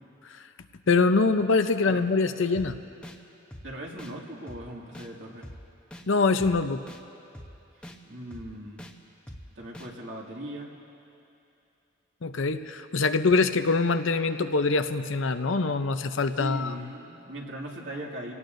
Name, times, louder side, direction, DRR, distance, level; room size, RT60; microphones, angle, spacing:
voice 1, 0.9-2.8 6.1-6.8 12.2-16.7, left 3 dB, 70° left, 9 dB, 0.6 m, -24 dB
sound 1, 2.5-2.7 3.0-3.2 3.5-3.6 4.0-4.1 4.5-4.6 4.9-5.1 5.4-5.6 5.9-6.0 6.4-6.5 6.9-7.0 7.3-7.5 7.8-8.0 8.3-8.4 8.8-8.9 9.3-9.4 9.7-9.9, equal, 5° left, 0.8 m, -43 dB
voice 2, 3.6-5.5 7.7-8.8 9.5-10.7 16.4-18.3, right 1 dB, 65° right, -2 dB, 2.2 m, -39 dB
28.0 x 18.0 x 2.6 m, 2.8 s
head